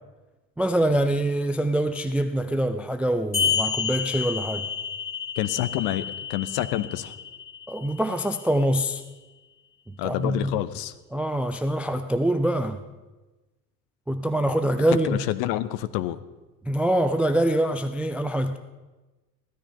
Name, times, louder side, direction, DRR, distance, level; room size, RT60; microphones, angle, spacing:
voice 1, 0.6-4.7 7.7-9.0 9.9-10.5 11.1-12.8 14.1-15.2 16.6-18.6, right 1 dB, 5° right, 0.4 m, -24 dB
sound 1, 3.3-8.3, left 6 dB, 85° left, 2.9 m, -30 dB
voice 2, 5.4-7.1 10.0-10.9 15.0-16.2, left 14 dB, 50° left, 0.9 m, -28 dB
16.0 x 12.5 x 5.5 m
figure-of-eight pair, 70°, 49 cm